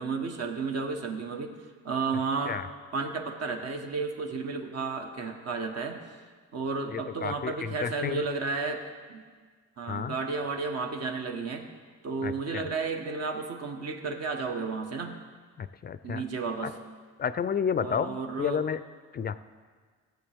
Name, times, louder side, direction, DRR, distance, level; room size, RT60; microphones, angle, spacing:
voice 1, 0.0-1.5 1.8-2.6 2.9-6.0 6.5-9.2 9.8-11.7 12.0-15.2 16.0-16.7 17.8-18.6, right 4 dB, 55° right, 4 dB, 1.3 m, -32 dB
voice 2, 6.9-8.2 9.9-10.1 12.2-12.7 15.6-16.2 17.2-18.8 19.1-19.3, left 7 dB, 35° left, 13 dB, 0.4 m, -31 dB
14.5 x 7.7 x 3.5 m, 1.5 s
cardioid pair, 90°, 30 cm